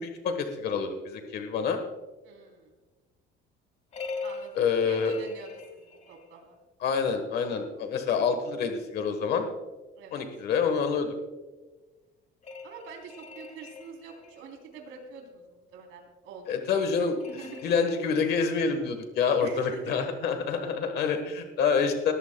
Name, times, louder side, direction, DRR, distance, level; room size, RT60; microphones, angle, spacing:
voice 1, 0.0-1.8 4.6-5.2 6.8-9.5 10.1-11.1 16.5-17.2 17.6-22.1, left 5 dB, 55° left, 6 dB, 1.3 m, -27 dB
voice 2, 2.2-2.7 4.2-6.6 10.0-10.2 12.6-16.9 17.3-17.7 19.4-20.3, right 4 dB, 90° right, 2 dB, 3.4 m, -46 dB
sound 1, 3.9-6.4 12.4-14.6 17.2-18.7, left 4 dB, 35° left, 1.3 m, -42 dB
20.5 x 14.5 x 2.2 m, 1.2 s
cardioid pair, 180°, 20 cm